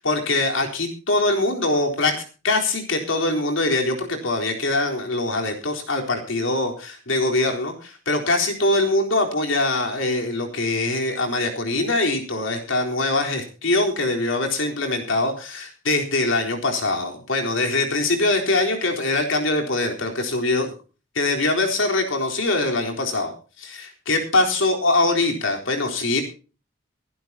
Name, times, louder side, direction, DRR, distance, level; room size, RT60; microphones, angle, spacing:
voice 1, 0.0-2.2 2.4-20.7 21.1-23.3 23.6-26.2, left 2 dB, 75° left, 2 dB, 3.9 m, -23 dB
23.5 x 11.5 x 2.9 m, 0.35 s
head